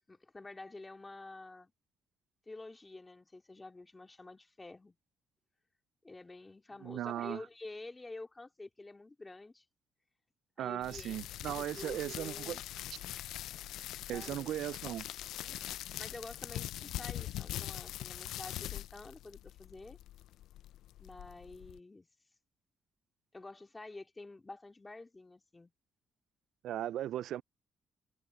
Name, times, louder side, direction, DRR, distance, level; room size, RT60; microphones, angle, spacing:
voice 1, 0.1-1.7 2.5-5.0 6.0-9.6 10.6-12.6 14.1-14.5 16.0-20.0 21.0-22.1 23.3-25.7, left 2 dB, 20° left, 2.8 m, -49 dB
voice 2, 6.8-7.4 10.6-12.6 14.1-15.0 26.6-27.4, right 12 dB, 80° right, 0.3 m, -37 dB
sound 1, 10.8-21.8, left 13 dB, 85° left, 0.4 m, -43 dB
cardioid pair, 90°, 0 cm